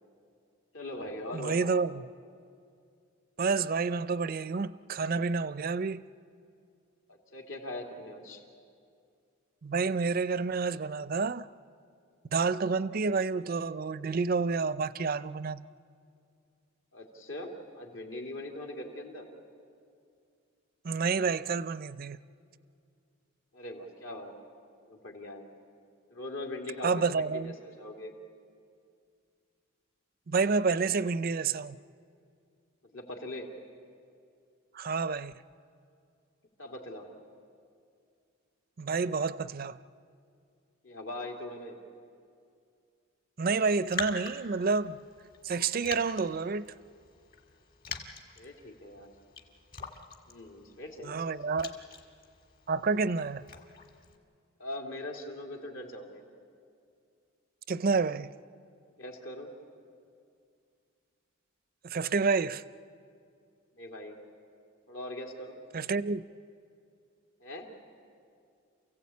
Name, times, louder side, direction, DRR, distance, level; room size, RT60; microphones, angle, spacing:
voice 1, 0.7-1.8 7.1-8.4 16.9-19.3 23.5-24.3 24.9-25.5 26.1-27.0 27.3-28.1 32.9-33.5 36.6-37.1 40.8-41.8 48.4-49.1 50.3-51.3 54.6-56.2 59.0-59.5 63.8-64.2 64.9-65.6 67.4-67.7, left 1 dB, 75° left, 2.7 m, -41 dB
voice 2, 1.3-2.1 3.4-6.1 9.6-11.5 12.3-15.6 20.8-22.2 26.8-27.5 30.3-31.8 34.7-35.3 38.8-39.8 43.4-45.0 45.4-46.8 51.0-51.7 52.7-53.5 57.7-58.3 61.8-62.6 65.7-66.3, right 4 dB, 45° right, 0.5 m, -29 dB
Raindrop, 43.5-54.2, left 4 dB, 45° left, 1.8 m, -45 dB
28.0 x 16.0 x 8.4 m
head